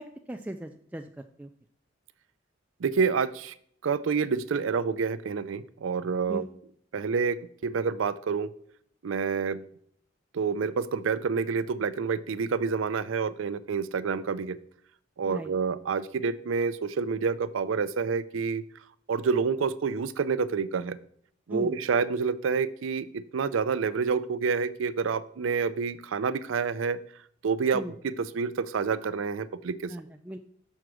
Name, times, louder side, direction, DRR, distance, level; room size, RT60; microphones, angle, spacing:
voice 1, 0.0-1.5 6.3-6.5 15.3-15.5 21.5-21.8 27.7-27.9 29.9-30.4, right 1 dB, 10° right, 5 dB, 0.3 m, -38 dB
voice 2, 2.8-3.5 3.8-6.4 6.9-8.5 9.0-9.6 10.3-14.6 15.2-18.6 19.1-21.0 21.5-27.0 27.4-29.9, right 5 dB, 85° right, 15 dB, 0.4 m, -28 dB
6.4 x 4.6 x 6.1 m, 0.65 s
head